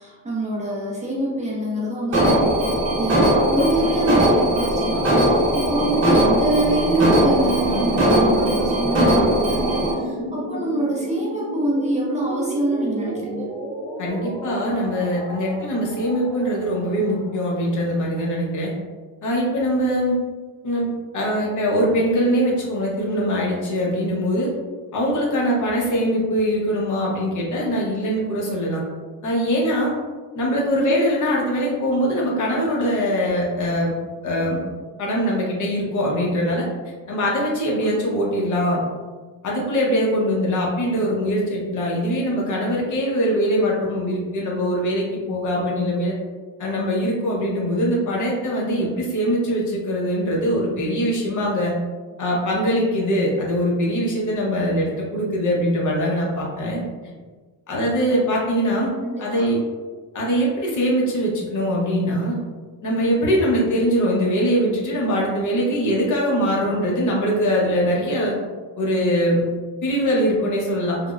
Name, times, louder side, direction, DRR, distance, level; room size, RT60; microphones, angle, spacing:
voice 1, 0.0-9.6 10.0-13.5 30.8-31.0 37.8-38.2 59.0-59.5, right 1 dB, 15° right, -5 dB, 0.5 m, -25 dB
Alarm, 2.1-9.9, right 1 dB, 35° right, 1.0 m, -19 dB
sound 1, 6.4-18.2, right 2 dB, 70° right, 0.8 m, -32 dB
voice 2, 14.0-18.7 19.2-20.2 20.6-20.9 21.1-24.5 24.9-28.8 29.2-30.0 30.3-33.9 34.2-34.6 35.0-36.7 37.1-38.8 39.4-46.1 46.6-51.7 52.2-56.8 57.7-58.9 59.2-59.6 60.1-62.4 62.8-68.3 68.8-69.5 69.8-71.0, equal, 45° left, -3 dB, 0.8 m, -22 dB
3.4 x 2.0 x 2.3 m, 1.4 s
cardioid pair, 145°, 41 cm